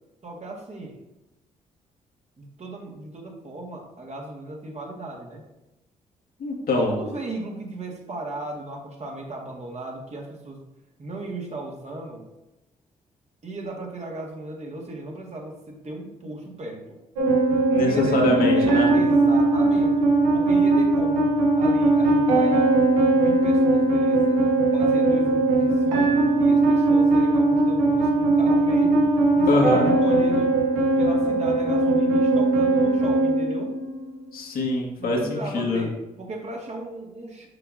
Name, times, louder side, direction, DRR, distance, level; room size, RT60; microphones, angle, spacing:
voice 1, 0.2-1.0 2.4-5.4 6.8-10.6 11.0-12.3 13.4-17.0 17.7-21.2 21.5-22.7 23.1-24.4 24.7-30.6 31.0-33.7 35.0-37.5, right 2 dB, 40° right, 0 dB, 1.7 m, -36 dB
voice 2, 6.4-6.9 17.7-18.9 29.5-29.9 34.3-35.8, left 2 dB, 60° left, -1 dB, 1.5 m, -24 dB
sound 1, 17.2-34.2, right 2 dB, 85° right, 0.9 m, -20 dB
6.7 x 6.0 x 2.7 m, 0.96 s
hypercardioid pair, 40°, 17 cm